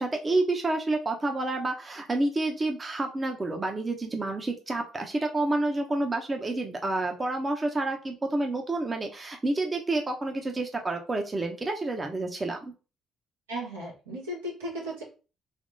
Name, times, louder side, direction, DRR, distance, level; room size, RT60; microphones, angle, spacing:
voice 1, 0.0-12.7, right 2 dB, 30° right, 3 dB, 1.0 m, -29 dB
voice 2, 13.5-15.0, equal, 85° right, -5 dB, 1.8 m, -35 dB
3.6 x 3.0 x 4.0 m, 0.33 s
hypercardioid pair, 45°, 0 cm